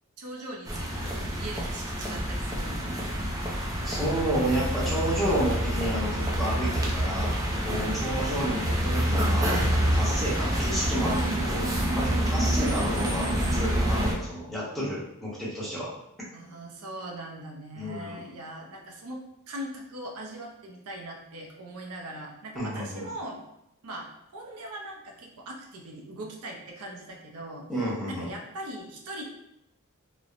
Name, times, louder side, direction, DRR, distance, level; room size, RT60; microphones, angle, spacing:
voice 1, 0.2-3.0 7.7-8.2 11.1-11.5 12.1-12.5 16.3-23.4 23.8-27.7 28.1-29.2, right 1 dB, 80° right, 0 dB, 0.5 m, -40 dB
sound 1, 0.7-14.1, equal, 15° right, 0.4 m, -27 dB
voice 2, 3.8-7.3 7.6-11.7 12.0-15.9 17.8-18.2 22.5-23.1 27.7-28.3, right 1 dB, ahead, -8 dB, 0.7 m, -31 dB
3.0 x 2.0 x 2.4 m, 0.83 s
head